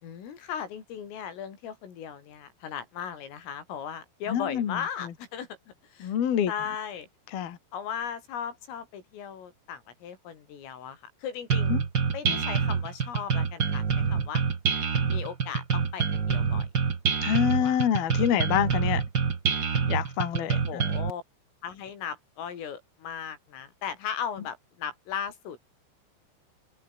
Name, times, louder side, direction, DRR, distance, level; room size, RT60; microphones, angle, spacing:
voice 1, 0.0-5.5 5.8-6.1 6.5-7.1 7.7-11.8 12.1-14.4 15.1-16.7 17.6-17.8 20.5-21.2 21.6-25.6, left 8 dB, 75° left, 6.5 m, -37 dB
voice 2, 4.3-4.8 6.0-6.5 7.3-7.6 11.7-11.8 12.3-12.4 17.2-19.0 19.9-20.9, left 9 dB, 55° left, 3.9 m, -26 dB
sound 1, 11.5-21.1, right 6 dB, 50° right, 1.3 m, -26 dB
omnidirectional pair, 5.9 m